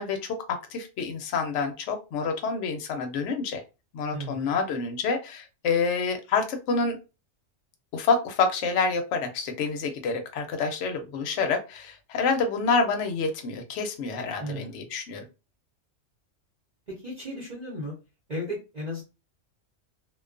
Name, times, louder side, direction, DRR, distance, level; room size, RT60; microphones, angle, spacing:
voice 1, 0.0-3.6 3.9-7.0 7.9-15.3, left 4 dB, 70° left, 5 dB, 0.9 m, -28 dB
voice 2, 4.1-4.6 14.4-14.8 16.9-17.9 18.3-19.0, equal, 40° right, -6 dB, 0.8 m, -35 dB
2.4 x 2.2 x 2.4 m, 0.29 s
omnidirectional pair, 1.3 m